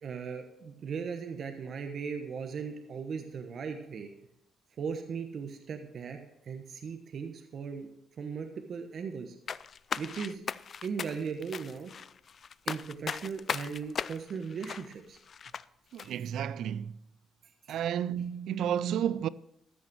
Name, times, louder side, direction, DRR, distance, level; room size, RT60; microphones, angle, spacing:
voice 1, 0.0-4.1 4.8-7.9 8.2-9.4 10.0-10.4 10.8-11.9 12.6-15.2 16.0-16.3 17.6-17.8, right 6 dB, 55° right, 1.2 m, -38 dB
sound 1, 9.5-15.6 16.0-16.1, left 7 dB, 50° left, 0.3 m, -38 dB
voice 2, 15.9-16.9 17.7-19.3, right 9 dB, 75° right, 0.3 m, -31 dB
13.5 x 6.4 x 6.2 m
cardioid pair, 90°, 0 cm